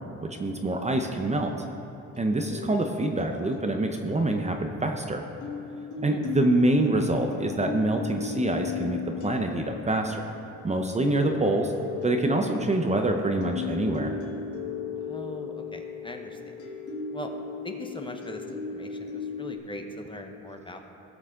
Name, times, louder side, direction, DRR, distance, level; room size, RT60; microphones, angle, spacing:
voice 1, 0.4-1.6 2.2-5.2 6.0-10.2 10.6-11.7 12.0-14.1, right 2 dB, 20° right, 4 dB, 0.8 m, -26 dB
sound 1, 2.1-5.0 5.4-19.6, left 6 dB, 75° left, 1.5 m, -36 dB
voice 2, 15.0-16.5 17.1-17.3 17.6-20.8, left 1 dB, 15° left, 4 dB, 1.0 m, -40 dB
17.5 x 6.1 x 3.8 m, 3.0 s
cardioid pair, 90°, 30 cm